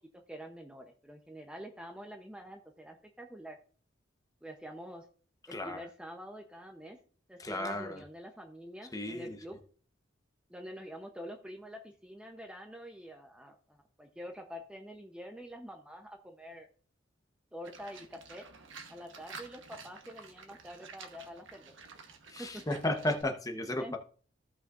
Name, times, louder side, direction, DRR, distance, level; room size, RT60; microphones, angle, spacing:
voice 1, 0.1-3.6 4.4-5.1 5.5-7.0 7.3-9.6 10.5-16.7 17.5-18.5 18.9-22.7 23.8-24.0, equal, 5° right, 0.7 m, -47 dB
voice 2, 5.5-5.8 7.4-8.0 8.9-9.3 22.3-24.0, left 1 dB, 20° left, 0.9 m, -34 dB
Livestock farm animals working animals, 17.6-23.2, right 4 dB, 75° right, 1.1 m, -51 dB
15.5 x 5.6 x 2.5 m
head